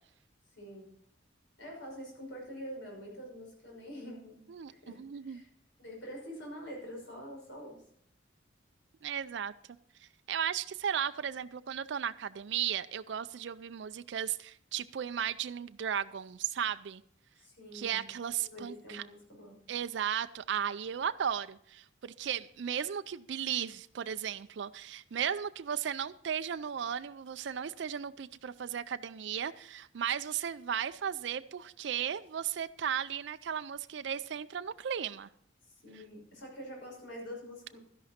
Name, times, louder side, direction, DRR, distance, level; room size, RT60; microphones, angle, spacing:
voice 1, 0.5-0.9 1.6-4.4 4.7-5.5 5.8-7.8 17.4-18.1 18.4-19.5 35.6-37.8, equal, 70° left, -1 dB, 5.8 m, -46 dB
voice 2, 4.5-5.4 9.0-9.5 10.0-17.0 17.7-19.0 19.7-35.3, right 8 dB, 65° right, 11 dB, 0.4 m, -35 dB
12.5 x 11.0 x 4.3 m, 0.68 s
head